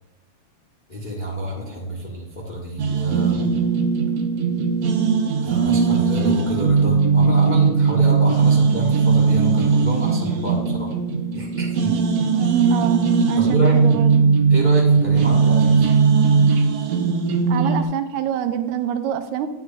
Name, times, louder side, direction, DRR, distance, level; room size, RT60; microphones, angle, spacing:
voice 1, 0.9-3.5 5.4-11.0 11.3-11.9 13.4-13.8 14.5-15.9, equal, 55° left, -2 dB, 0.5 m, -29 dB
sound 1, 2.8-17.8, right 5 dB, 70° right, 1.7 m, -18 dB
voice 2, 12.7-14.2 17.5-19.5, right 9 dB, 85° right, 8 dB, 2.0 m, -26 dB
10.0 x 9.3 x 2.4 m, 0.90 s
omnidirectional pair, 3.3 m